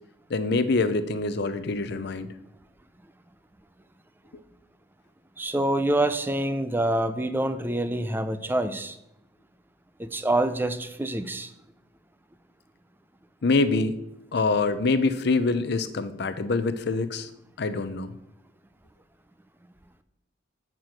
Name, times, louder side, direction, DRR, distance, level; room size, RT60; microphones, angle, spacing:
voice 1, 0.3-2.3 13.4-14.0 14.3-17.3 17.6-18.1, left 3 dB, 60° left, 12 dB, 0.6 m, -25 dB
voice 2, 5.4-9.0 10.0-11.5, right 1 dB, 10° right, 11 dB, 0.4 m, -26 dB
7.6 x 4.5 x 6.3 m, 0.84 s
head